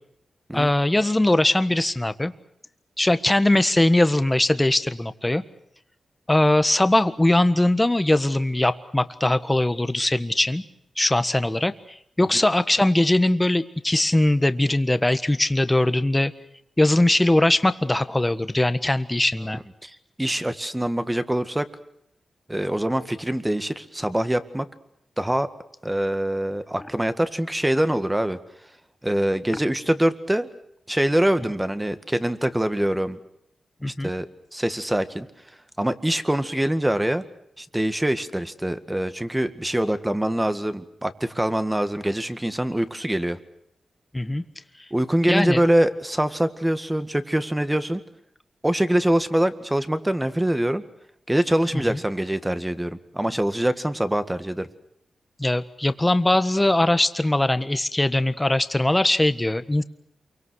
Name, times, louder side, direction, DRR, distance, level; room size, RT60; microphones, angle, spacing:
voice 1, 0.5-2.3 3.0-5.4 6.3-10.6 11.0-16.3 16.8-19.6 33.8-34.1 44.1-44.4 45.3-45.6 51.7-52.0 55.4-59.8, left 1 dB, 15° left, 12 dB, 1.5 m, -21 dB
voice 2, 19.8-21.7 22.5-24.7 25.2-25.5 25.8-28.4 29.0-30.5 30.9-33.2 33.8-34.3 34.5-35.3 35.8-37.2 37.6-43.4 44.9-48.0 48.6-50.8 51.3-54.7, right 1 dB, 10° right, 11 dB, 1.9 m, -24 dB
28.0 x 24.0 x 6.4 m, 0.76 s
cardioid pair, 65°, 0 cm